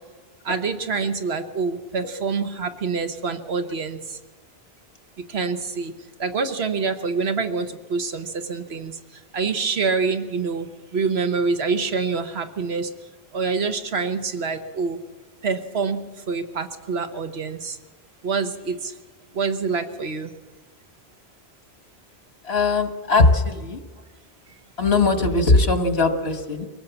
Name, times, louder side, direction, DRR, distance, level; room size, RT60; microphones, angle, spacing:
voice 1, 0.5-4.0 5.3-5.9 6.2-8.9 9.3-10.7 10.9-12.9 13.3-15.0 15.4-16.0 16.3-17.7 18.2-18.8 19.4-20.3, right 4 dB, 80° right, 8 dB, 1.4 m, -26 dB
voice 2, 22.4-23.8 24.8-26.6, left 3 dB, 85° left, 7 dB, 1.8 m, -19 dB
24.0 x 17.5 x 7.1 m, 1.3 s
omnidirectional pair, 1.0 m